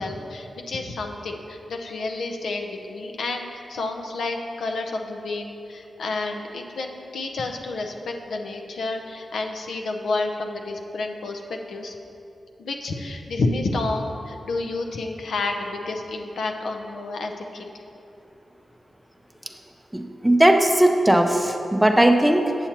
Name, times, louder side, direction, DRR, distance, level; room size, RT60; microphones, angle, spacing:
voice 1, 0.0-12.0 12.6-17.6, left 3 dB, 80° left, 3 dB, 0.6 m, -30 dB
voice 2, 19.9-22.5, right 1 dB, 5° right, 5 dB, 0.5 m, -18 dB
8.0 x 7.0 x 2.9 m, 2.8 s
cardioid pair, 70°, 0 cm